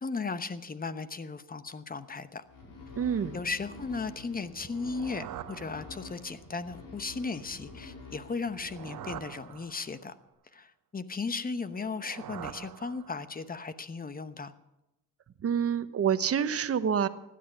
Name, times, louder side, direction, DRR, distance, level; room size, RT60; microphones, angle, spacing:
voice 1, 0.0-2.4 3.3-10.1 10.5-14.5, left 4 dB, 25° left, 12 dB, 1.0 m, -36 dB
sound 1, 2.5-9.9, left 3 dB, 70° left, 5.3 m, -48 dB
voice 2, 3.0-3.4 15.4-17.1, right 7 dB, 45° right, 12 dB, 1.0 m, -27 dB
sound 2, 4.6-6.4 8.4-10.2 11.7-13.5, right 12 dB, 65° right, 0.9 m, -45 dB
16.0 x 10.5 x 6.9 m, 0.91 s
cardioid pair, 85°, 34 cm